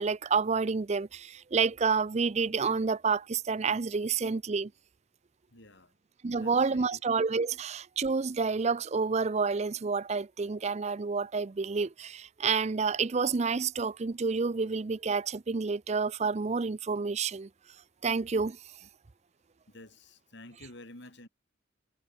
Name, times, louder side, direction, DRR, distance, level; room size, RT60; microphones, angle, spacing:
voice 1, 0.0-4.7 6.2-17.5 18.0-18.6, right 5 dB, 35° right, 0.5 m, -29 dB
voice 2, 5.5-5.9 6.4-7.0 18.8-18.9 19.7-21.3, left 1 dB, 60° left, 4.4 m, -51 dB
head